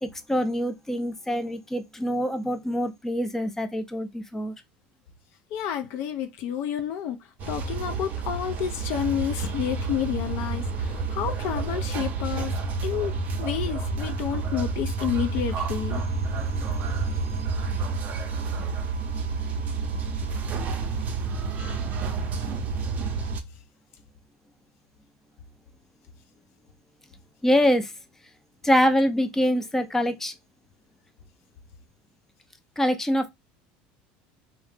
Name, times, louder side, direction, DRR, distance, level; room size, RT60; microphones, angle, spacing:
voice 1, 0.0-4.5 16.4-17.4 27.4-27.9 28.6-30.3 32.8-33.3, equal, 10° left, 0.5 m, -25 dB
voice 2, 5.5-12.5 12.8-16.0, left 9 dB, 60° left, 0.5 m, -30 dB
sound 1, 7.4-23.4, right 4 dB, 40° right, 0.6 m, -29 dB
2.7 x 2.0 x 3.3 m
supercardioid pair, 120°, 4 cm